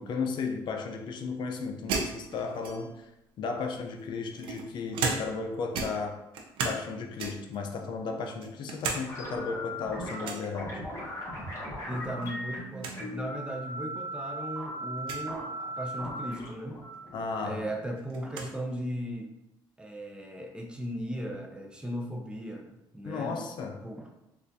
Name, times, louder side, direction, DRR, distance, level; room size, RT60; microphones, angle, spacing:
voice 1, 0.0-3.1 3.4-6.2 6.6-10.8 17.1-17.7 23.0-23.8, left 4 dB, 65° left, 0.5 m, -34 dB
sound 1, 1.9-3.1 3.9-5.5 5.7-6.9 7.2-7.6 8.1-9.0 9.4-9.5 10.2-10.5 11.9-12.3 12.5-12.6 12.8-13.0 13.8-13.9 15.0-15.3 16.9-17.0 17.4-18.5, right 4 dB, 80° right, 0.5 m, -35 dB
sound 2, 9.1-18.0, equal, 35° left, 1.4 m, -38 dB
voice 2, 11.9-16.8 17.4-19.3 19.8-23.5 23.8-24.1, equal, 10° right, 0.6 m, -37 dB
4.3 x 2.5 x 2.6 m
cardioid pair, 95°, 9 cm